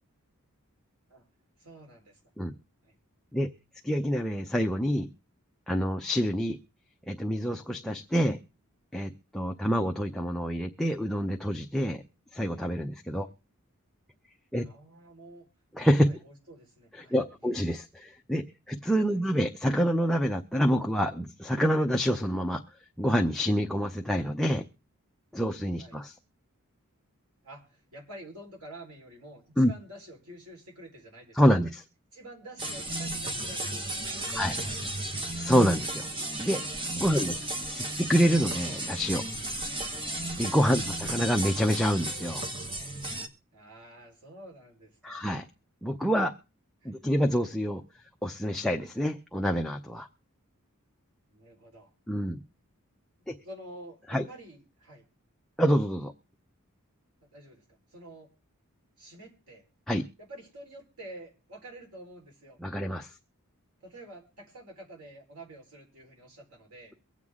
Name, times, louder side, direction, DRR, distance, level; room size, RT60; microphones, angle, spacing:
voice 1, 1.6-2.2 2.8-3.0 9.6-9.7 13.2-13.3 14.6-15.5 16.0-17.2 17.4-17.5 19.1-19.2 25.8-26.0 27.4-31.7 32.1-34.9 37.4-38.0 39.9-40.1 43.5-45.2 46.8-46.9 51.3-51.9 53.4-55.0 57.3-58.3 59.0-59.6 60.2-62.6 63.8-66.9, right 1 dB, 85° right, 1 dB, 4.2 m, -49 dB
voice 2, 3.8-5.1 5.7-6.6 7.1-8.4 8.9-12.0 12.3-13.3 14.5-14.7 15.8-16.1 16.9-22.6 23.0-24.7 25.3-26.1 29.6-29.7 31.3-31.8 34.4-34.5 35.4-36.1 36.4-36.6 37.0-39.2 40.4-42.4 45.0-45.4 45.8-46.3 46.8-47.8 48.2-50.1 52.1-52.4 53.3-53.4 54.1-54.2 55.6-56.1 59.9-60.1 62.6-63.1, equal, ahead, 2 dB, 0.6 m, -27 dB
sound 1, 32.6-43.3, right 1 dB, 25° right, 1.3 m, -34 dB
23.5 x 8.1 x 3.6 m, 0.32 s
head